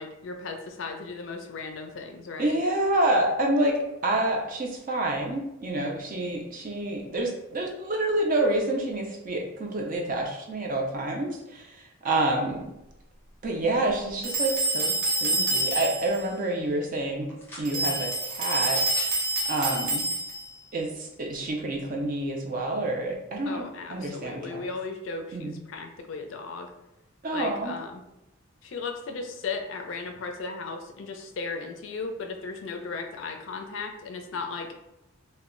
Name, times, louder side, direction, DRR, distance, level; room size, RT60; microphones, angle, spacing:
voice 1, 0.0-2.6 23.5-26.7 27.3-28.0 28.6-34.7, left 4 dB, 65° left, 4 dB, 0.4 m, -36 dB
voice 2, 2.4-3.8 4.0-11.7 12.0-12.6 13.4-14.9 15.2-17.3 17.6-18.8 19.5-20.0 20.7-23.6 23.9-24.7 25.3-25.6 27.2-27.7, right 1 dB, 40° right, 1 dB, 0.4 m, -28 dB
sound 1, 14.2-16.2 17.7-20.5, right 2 dB, 65° right, 0.8 m, -27 dB
sound 2, 17.3-17.7 18.6-19.2 20.1-20.2, left 1 dB, 10° left, 0.6 m, -42 dB
2.1 x 2.0 x 3.6 m, 0.91 s
head